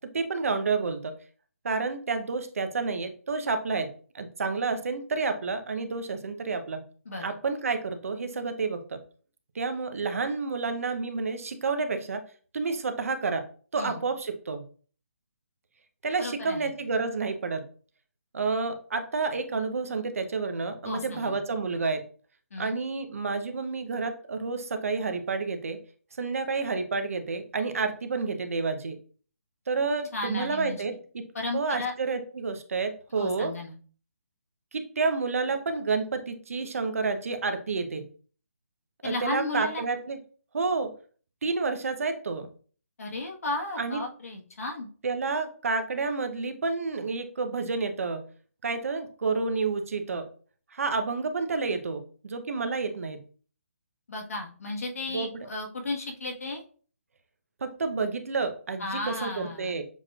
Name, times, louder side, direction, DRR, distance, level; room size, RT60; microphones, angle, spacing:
voice 1, 0.1-1.1 1.6-3.9 4.1-6.8 7.2-9.0 9.5-12.2 12.5-13.4 13.7-14.6 16.0-17.6 18.3-22.0 22.6-25.8 26.2-29.0 29.7-31.2 31.5-33.5 34.7-38.0 39.0-40.2 40.5-40.9 41.4-42.5 43.8-44.0 45.0-48.2 48.6-50.2 50.7-53.2 55.1-55.5 57.6-59.8, right 4 dB, 65° right, 7 dB, 0.8 m, -29 dB
voice 2, 16.2-16.7 20.8-21.4 22.5-22.8 30.1-30.8 31.3-31.9 33.2-33.7 39.0-39.8 43.0-44.9 54.1-56.6 58.8-59.8, left 2 dB, 75° left, 0 dB, 1.5 m, -34 dB
7.1 x 3.1 x 2.4 m, 0.42 s
hypercardioid pair, 150°, 8 cm